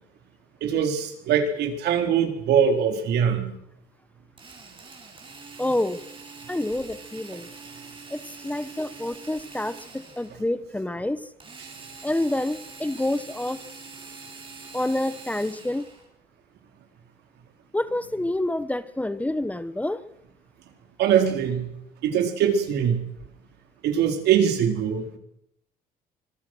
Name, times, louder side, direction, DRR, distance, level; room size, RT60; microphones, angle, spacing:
voice 1, 0.6-3.5 21.0-21.7 22.0-23.0 23.8-25.2, right 8 dB, 75° right, 6 dB, 4.3 m, -22 dB
Drill, 4.4-10.5 11.4-16.1, right 4 dB, 30° right, 6.6 m, -44 dB
voice 2, 5.6-6.0 6.5-7.5 8.1-9.8 10.2-11.2 12.0-13.6 14.7-15.8 17.7-20.0, left 1 dB, 10° left, 14 dB, 1.1 m, -27 dB
25.5 x 20.5 x 6.3 m, 0.76 s
cardioid pair, 110°, 17 cm